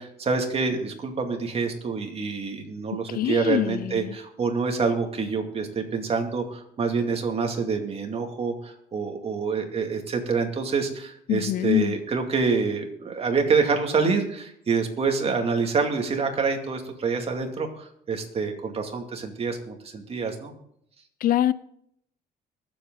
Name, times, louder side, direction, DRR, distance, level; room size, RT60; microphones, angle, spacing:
voice 1, 0.0-20.5, right 5 dB, 35° right, 4 dB, 2.4 m, -27 dB
voice 2, 3.1-4.1 11.3-11.9 21.2-21.5, left 13 dB, 60° left, 18 dB, 0.5 m, -24 dB
23.0 x 7.8 x 4.0 m, 0.71 s
cardioid pair, 110°, 17 cm